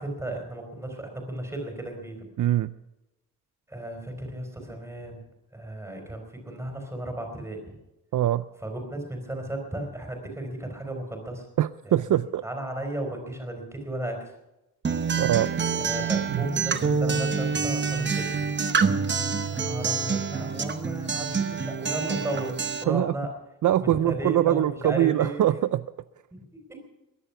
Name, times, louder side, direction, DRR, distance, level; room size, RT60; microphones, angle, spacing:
voice 1, 0.0-2.2 3.7-5.2 5.5-7.8 8.6-11.4 11.8-12.0 12.4-14.2 15.8-18.5 19.5-22.6 22.8-23.3 23.8-25.4 26.3-26.4, right 1 dB, 10° right, 3 dB, 4.3 m, -34 dB
voice 2, 2.4-2.7 8.1-8.4 11.6-12.4 15.2-15.5 16.3-16.5 22.9-23.2 23.6-25.8, right 12 dB, 65° right, 14 dB, 0.5 m, -23 dB
Acoustic guitar, 14.8-22.8, right 5 dB, 35° right, 0.9 m, -27 dB
22.0 x 11.0 x 5.8 m, 0.95 s
wide cardioid pair, 165°, 34 cm